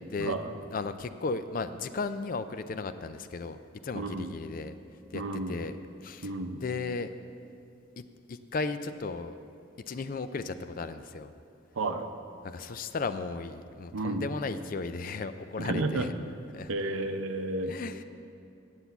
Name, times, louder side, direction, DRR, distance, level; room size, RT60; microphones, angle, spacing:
voice 1, 0.2-0.5 3.9-4.3 5.1-5.6 6.2-6.6 11.8-12.1 13.9-14.3 15.6-16.1 16.7-17.7, right 2 dB, 90° right, 7 dB, 0.7 m, -32 dB
voice 2, 0.7-4.7 5.1-5.8 6.0-6.3 6.6-7.2 8.0-8.1 8.3-9.4 9.9-11.3 12.4-16.1 16.5-16.7 17.7-18.0, left 4 dB, 45° left, 11 dB, 0.4 m, -35 dB
8.0 x 7.3 x 8.1 m, 2.5 s
head